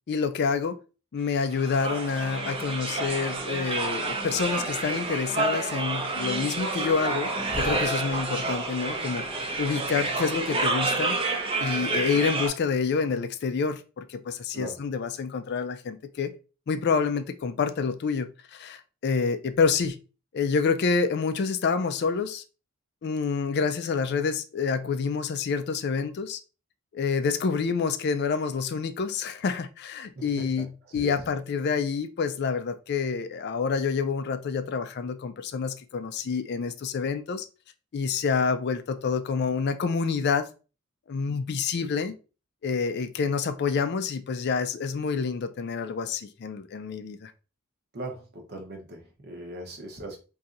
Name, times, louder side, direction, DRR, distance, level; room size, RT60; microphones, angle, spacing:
voice 1, 0.1-0.8 1.1-11.2 11.6-16.3 16.7-20.0 20.3-22.4 23.0-26.4 26.9-37.5 37.9-40.5 41.1-42.1 42.6-47.3, left 5 dB, 50° left, 0.4 m, -28 dB
sound 1, 1.5-12.5, right 3 dB, 25° right, 0.6 m, -29 dB
voice 2, 30.2-31.1 47.9-50.2, right 2 dB, 50° right, 0.9 m, -39 dB
4.1 x 2.7 x 2.4 m
head